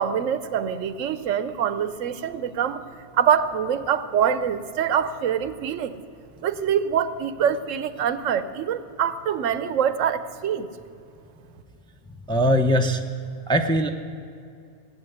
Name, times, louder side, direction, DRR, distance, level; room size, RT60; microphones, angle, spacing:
voice 1, 0.0-2.8 3.1-6.0 6.4-10.7, right 8 dB, 80° right, 13 dB, 1.1 m, -24 dB
voice 2, 12.3-13.0 13.5-13.9, equal, 5° left, 4 dB, 0.5 m, -20 dB
18.5 x 8.8 x 8.0 m, 2.5 s
omnidirectional pair, 1.3 m